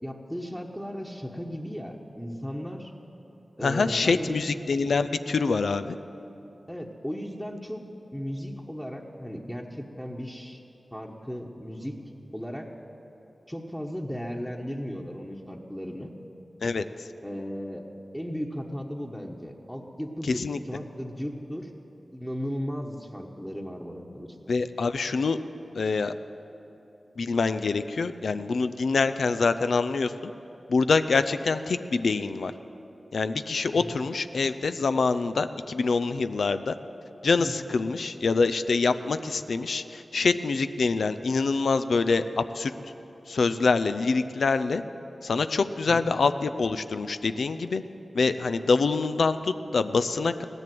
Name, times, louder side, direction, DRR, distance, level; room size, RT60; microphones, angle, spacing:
voice 1, 0.0-2.9 3.6-4.4 6.7-7.8 8.1-10.6 10.9-12.0 12.3-12.7 13.5-16.1 17.2-17.9 18.1-21.7 22.1-24.5 33.7-33.8 37.4-37.5 45.8-46.1, equal, 5° left, -2 dB, 1.2 m, -36 dB
voice 2, 3.6-6.0 16.6-16.8 20.2-20.6 24.5-25.4 25.7-26.1 27.2-30.3 30.7-32.5 33.1-36.8 37.2-42.7 43.3-44.8 45.2-47.8 48.1-50.4, left 4 dB, 90° left, 10 dB, 0.4 m, -25 dB
15.5 x 10.5 x 7.7 m, 3.0 s
cardioid pair, 45°, 0 cm